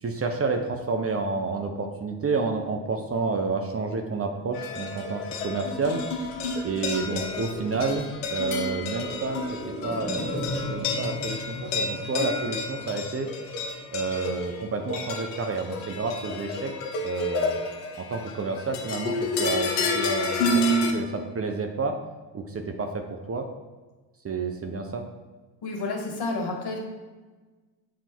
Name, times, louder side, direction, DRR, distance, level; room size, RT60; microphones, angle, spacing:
voice 1, 0.0-6.0 6.6-9.4 9.8-10.4 10.7-13.3 13.9-16.7 17.0-17.6 17.9-20.6 20.9-21.9 22.3-23.0 23.3-23.5 24.2-25.0, right 4 dB, 30° right, 4 dB, 0.8 m, -29 dB
sound 1, 4.5-20.9, left 2 dB, 80° left, 1.1 m, -30 dB
sound 2, 5.7-15.3 15.6-15.7, equal, ahead, 1.6 m, -38 dB
voice 2, 25.6-26.8, left 3 dB, 50° left, 2 dB, 1.9 m, -30 dB
7.2 x 3.7 x 4.5 m, 1.3 s
hypercardioid pair, 65°, 50 cm